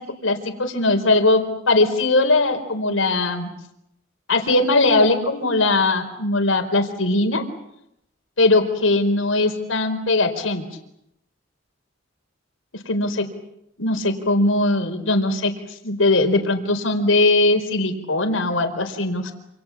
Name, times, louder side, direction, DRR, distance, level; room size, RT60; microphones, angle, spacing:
voice 1, 0.2-3.5 4.3-7.4 8.4-10.6 12.7-13.3 13.8-15.5 15.8-19.3, left 2 dB, 90° left, 7 dB, 4.4 m, -20 dB
28.0 x 28.0 x 7.3 m, 0.80 s
head